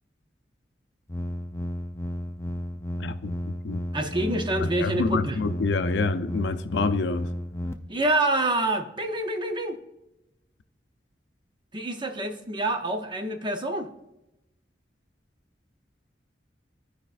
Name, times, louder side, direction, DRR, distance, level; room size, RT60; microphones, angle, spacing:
sound 1, 1.1-7.7, left 1 dB, 15° left, 0.5 m, -33 dB
voice 1, 3.0-3.8 4.8-7.3, left 3 dB, 85° left, 11 dB, 0.5 m, -27 dB
voice 2, 3.9-5.4 7.9-9.8 11.7-13.9, right 2 dB, 25° right, 5 dB, 0.7 m, -27 dB
14.5 x 5.0 x 2.5 m, 0.91 s
head